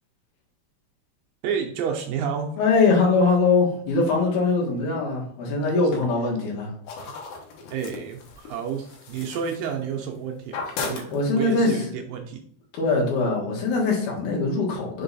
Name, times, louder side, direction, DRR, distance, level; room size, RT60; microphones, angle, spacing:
voice 1, 1.4-2.5 7.0-7.1 7.7-12.4 12.9-13.1, right 7 dB, 80° right, 2 dB, 2.0 m, -30 dB
voice 2, 2.6-6.7 11.1-11.8 12.7-15.0, left 3 dB, 65° left, -3 dB, 3.4 m, -22 dB
sound 1, 6.9-10.2 10.4-11.6, left 4 dB, 90° left, 3.5 m, -36 dB
6.8 x 3.9 x 4.0 m, 0.63 s
omnidirectional pair, 4.7 m